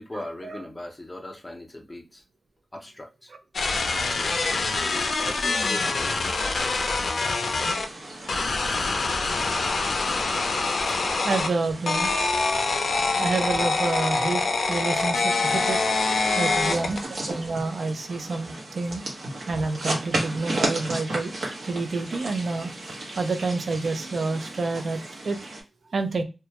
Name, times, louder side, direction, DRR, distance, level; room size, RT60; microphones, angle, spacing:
voice 1, 0.0-2.2 2.7-3.3 4.0-4.5 5.2-6.8 12.5-13.0 13.9-14.1 15.6-17.0, left 1 dB, 20° left, 0.5 m, -40 dB
sound 1, 3.5-7.9 8.3-11.5 11.9-17.0, left 3 dB, 75° left, 0.4 m, -25 dB
voice 2, 4.8-5.3 8.7-8.9 11.2-12.1 13.2-15.8 16.3-17.0 17.3-19.0 19.5-21.3 21.6-22.7 23.2-25.4 25.9-26.2, right 3 dB, 65° right, 0.4 m, -28 dB
sound 2, 7.6-25.6, right 2 dB, 85° right, 0.8 m, -35 dB
Bowed string instrument, 12.9-17.9, equal, 40° right, 0.9 m, -41 dB
2.2 x 2.1 x 2.7 m
wide cardioid pair, 105°, 0 cm